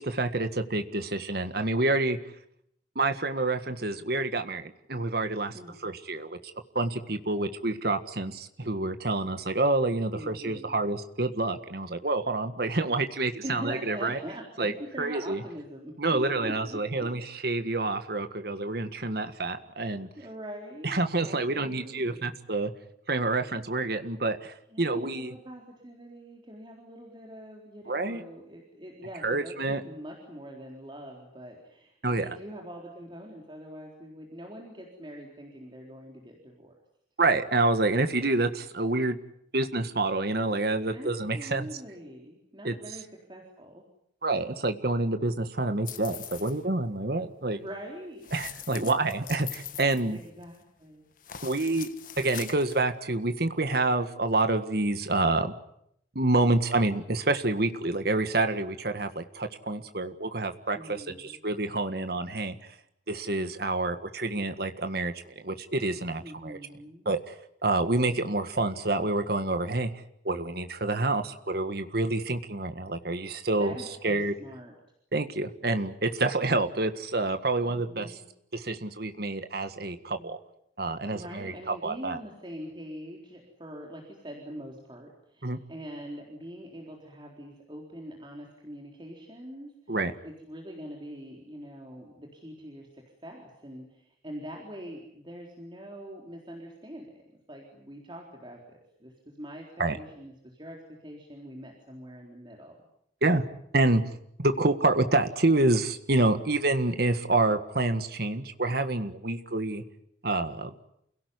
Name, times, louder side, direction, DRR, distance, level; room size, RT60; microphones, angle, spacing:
voice 1, 0.0-2.2 3.0-5.5 5.8-14.2 14.6-14.7 15.0-15.4 16.0-20.1 20.8-22.7 23.1-25.3 27.9-28.2 29.2-29.8 32.0-32.3 37.2-39.2 39.5-41.7 42.6-42.8 44.2-47.6 48.3-50.2 51.4-51.9 52.2-55.5 56.2-62.5 63.1-66.6 67.1-67.4 67.6-69.9 70.2-73.7 74.0-74.3 75.1-78.2 78.5-80.4 80.8-82.2 85.4-85.6 89.9-90.1 99.8-100.0 103.2-103.4 103.7-104.0 104.4-109.8 110.2-110.7, right 2 dB, 60° right, 8 dB, 1.7 m, -28 dB
voice 2, 10.1-10.8 13.4-17.1 20.1-22.3 24.7-36.8 40.9-43.0 43.3-43.8 47.5-48.3 48.7-48.9 49.9-51.1 60.7-61.4 66.2-67.1 73.5-74.7 77.6-78.3 80.2-80.3 81.1-97.1 97.5-99.7 99.9-102.8, equal, 25° right, -1 dB, 4.0 m, -43 dB
sound 1, 45.8-46.6 48.2-50.6 51.2-52.8, left 10 dB, 50° left, 1.3 m, -42 dB
28.5 x 17.5 x 9.6 m, 0.74 s
head